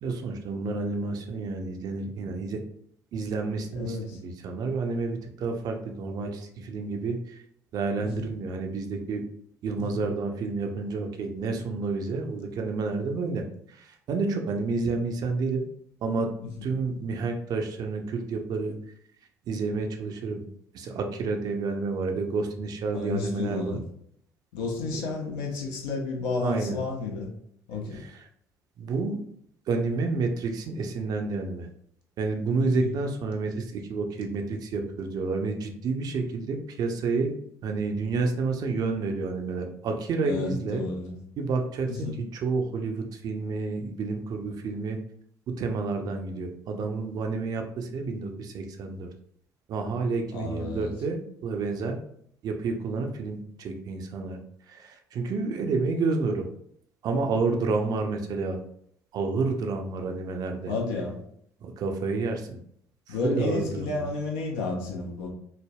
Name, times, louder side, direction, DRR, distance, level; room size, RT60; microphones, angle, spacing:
voice 1, 0.0-2.6 3.1-7.4 7.7-9.2 9.6-15.6 16.0-16.3 16.6-18.8 19.5-20.4 20.7-23.8 24.9-25.0 26.4-26.8 27.9-28.3 28.8-29.2 29.7-31.7 32.2-37.3 37.6-40.8 41.4-45.0 45.6-49.1 49.7-52.0 52.4-54.4 54.7-56.5 57.0-58.6 59.1-60.7 61.6-62.6 63.1-64.1, right 4 dB, 50° right, 4 dB, 0.5 m, -30 dB
voice 2, 3.8-4.2 8.0-8.1 9.8-10.0 16.6-16.7 22.9-23.9 24.5-27.3 27.7-28.0 32.6-32.9 40.2-41.2 41.9-42.2 50.3-50.9 60.7-61.2 63.1-65.3, left 3 dB, 70° left, 0 dB, 0.6 m, -31 dB
3.3 x 2.0 x 2.3 m, 0.67 s
hypercardioid pair, 55°, 8 cm